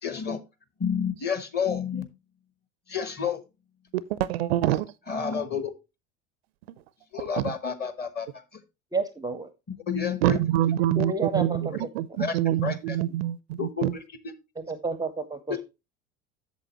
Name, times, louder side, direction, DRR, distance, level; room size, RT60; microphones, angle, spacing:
voice 1, 0.0-0.4 0.8-2.1 2.9-3.4 5.1-5.7 7.1-8.4 9.9-10.4 12.2-13.0 13.6-14.0, left 6 dB, 25° left, 1.2 m, -30 dB
voice 2, 4.3-4.9 10.2-11.7 11.9-13.9, right 13 dB, 55° right, 0.5 m, -25 dB
voice 3, 8.9-9.5 11.0-11.9 14.6-15.6, right 3 dB, 10° right, 0.6 m, -30 dB
8.2 x 7.0 x 3.0 m
figure-of-eight pair, 75°, 37 cm